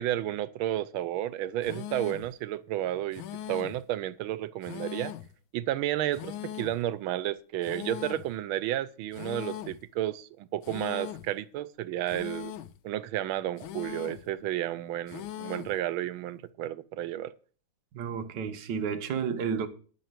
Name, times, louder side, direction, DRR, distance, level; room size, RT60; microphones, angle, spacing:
voice 1, 0.0-3.2 3.5-5.1 5.5-12.5 12.8-17.3, right 13 dB, 85° right, 1.5 m, -32 dB
sound 1, 1.6-2.3 3.1-3.8 4.6-5.3 6.1-6.8 7.6-8.3 9.1-9.8 10.6-11.3 12.1-12.8 13.6-14.3 15.1-15.8, left 11 dB, 80° left, 1.5 m, -40 dB
voice 2, 17.9-19.7, right 6 dB, 60° right, 1.6 m, -31 dB
11.5 x 5.8 x 7.5 m
omnidirectional pair, 2.2 m